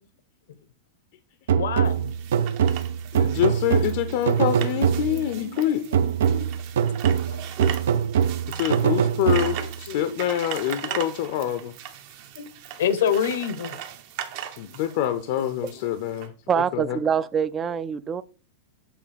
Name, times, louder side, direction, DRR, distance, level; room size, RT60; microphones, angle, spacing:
voice 1, 1.5-2.1 4.1-6.8 7.3-7.4 9.3-10.3 10.9-11.5 12.3-12.5 12.8-13.8 15.3-15.8 17.7-17.8, left 8 dB, 85° left, 0.8 m, -31 dB
sound 1, 1.5-5.4 5.9-9.8, right 8 dB, 80° right, 0.5 m, -23 dB
sound 2, 1.8-16.3, right 10 dB, 50° right, 0.8 m, -38 dB
voice 2, 3.1-5.8 8.5-11.7 14.6-16.3 16.7-17.0, left 11 dB, 55° left, 0.5 m, -26 dB
voice 3, 16.5-18.2, right 7 dB, 20° right, 0.3 m, -24 dB
7.0 x 2.8 x 5.1 m
supercardioid pair, 150°, 0 cm